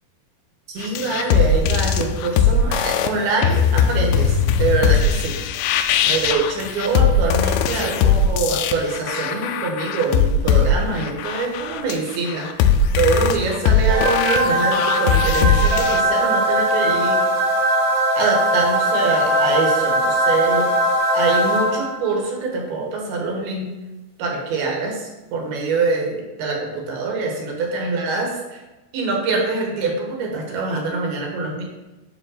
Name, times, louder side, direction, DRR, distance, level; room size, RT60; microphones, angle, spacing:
voice 1, 0.7-5.3 6.1-12.5 12.9-17.2 18.2-20.7 21.1-23.7 24.2-28.6 28.9-31.6, right 3 dB, 75° right, 0 dB, 3.3 m, -24 dB
sound 1, 0.8-16.0, left 6 dB, 80° left, 2.4 m, -20 dB
sound 2, 13.9-22.1, right 1 dB, 60° right, 2.5 m, -20 dB
9.3 x 3.7 x 6.5 m, 1.1 s
omnidirectional pair, 4.6 m